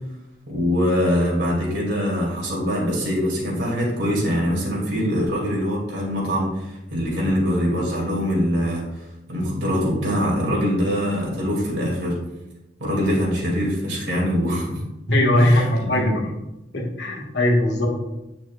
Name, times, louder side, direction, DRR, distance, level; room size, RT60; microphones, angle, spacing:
voice 1, 0.5-8.9 9.3-12.2 12.8-14.8 15.4-16.1, equal, 80° right, -3 dB, 2.6 m, -23 dB
voice 2, 15.1-16.0 16.7-17.9, left 1 dB, 70° left, -1 dB, 1.8 m, -19 dB
9.3 x 5.8 x 2.4 m, 0.94 s
head